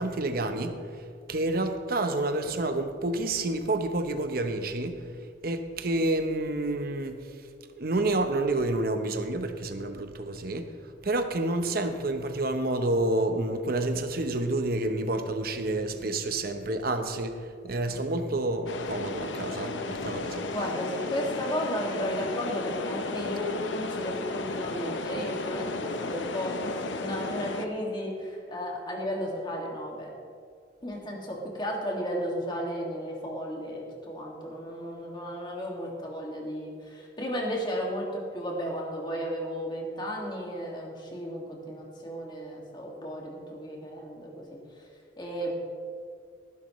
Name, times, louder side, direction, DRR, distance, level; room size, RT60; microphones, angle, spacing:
voice 1, 0.0-5.0 5.4-7.3 7.8-10.7 11.0-20.5, right 2 dB, 55° right, 0.9 m, -29 dB
sound 1, 18.7-27.7, left 3 dB, 85° left, 0.8 m, -34 dB
voice 2, 20.5-30.1 30.8-44.6 45.2-45.5, equal, 25° left, 2.1 m, -34 dB
18.0 x 10.5 x 3.2 m
head